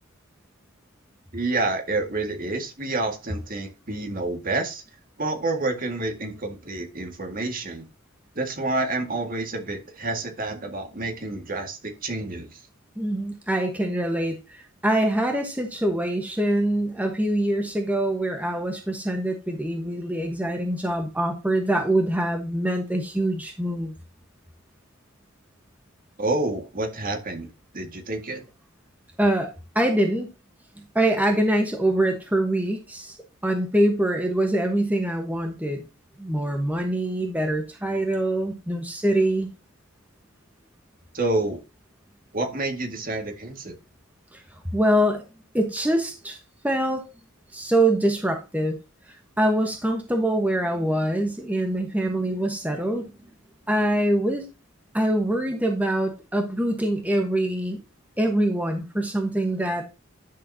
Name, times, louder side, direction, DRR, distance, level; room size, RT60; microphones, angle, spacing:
voice 1, 1.3-4.8 5.2-7.9 8.4-12.6 26.2-28.4 41.1-41.6 42.3-43.7, right 2 dB, 45° right, 1.9 m, -28 dB
voice 2, 13.0-23.9 29.2-30.3 30.8-33.2 33.4-35.8 36.2-39.5 44.3-44.4 44.7-45.2 45.5-46.4 46.6-47.0 47.5-48.8 49.4-53.1 53.7-54.4 54.9-57.8 58.2-59.9, right 1 dB, 10° right, 1.2 m, -24 dB
10.5 x 6.7 x 2.8 m
head